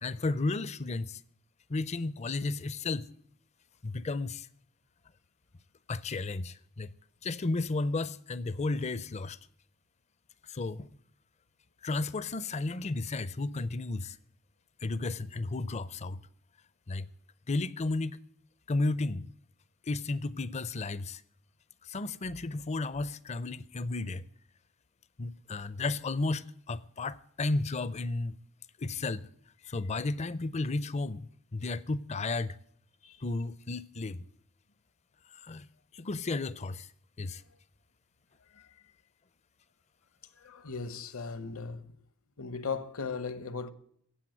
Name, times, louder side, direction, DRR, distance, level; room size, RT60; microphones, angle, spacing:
voice 1, 0.0-1.2 1.7-3.1 3.8-4.5 5.9-6.9 7.2-9.4 10.5-10.9 11.8-14.2 14.8-16.2 16.9-17.1 17.5-18.2 18.7-19.3 19.8-21.2 21.8-24.2 25.2-28.4 28.8-29.3 29.7-32.6 33.2-34.2 35.3-35.7 35.9-36.9 37.2-37.4, left 3 dB, 30° left, 0.5 m, -33 dB
voice 2, 40.4-41.9 42.4-43.7, left 5 dB, 70° left, 1.0 m, -37 dB
15.5 x 8.2 x 9.0 m
head